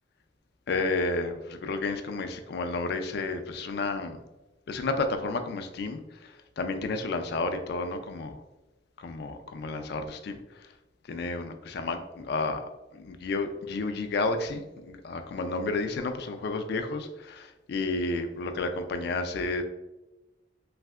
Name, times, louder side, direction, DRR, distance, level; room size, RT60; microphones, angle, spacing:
voice 1, 0.7-4.2 4.7-8.4 9.0-10.4 11.1-12.6 12.9-19.6, left 3 dB, 55° left, 7 dB, 0.3 m, -31 dB
3.2 x 2.6 x 2.3 m, 1.0 s
head